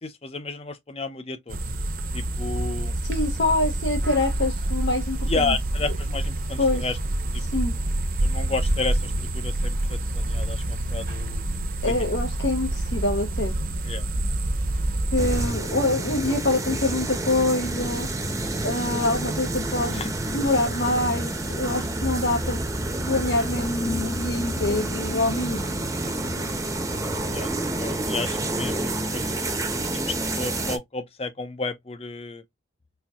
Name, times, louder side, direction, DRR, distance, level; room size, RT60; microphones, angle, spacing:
voice 1, 0.0-1.6 2.1-3.0 5.3-7.0 7.3-7.4 8.2-11.5 11.8-12.0 13.8-14.0 18.4-18.7 19.9-20.1 27.3-32.4, left 3 dB, 30° left, 0.5 m, -32 dB
sound 1, 1.5-15.5, right 1 dB, 50° right, 0.8 m, -27 dB
voice 2, 3.0-5.5 6.6-6.8 7.4-7.7 11.8-13.5 15.1-18.1 18.6-20.0 20.3-22.6 23.1-25.8, left 2 dB, 70° left, 0.8 m, -25 dB
sound 2, 15.2-30.8, right 2 dB, 15° right, 0.7 m, -28 dB
4.3 x 2.7 x 2.4 m
head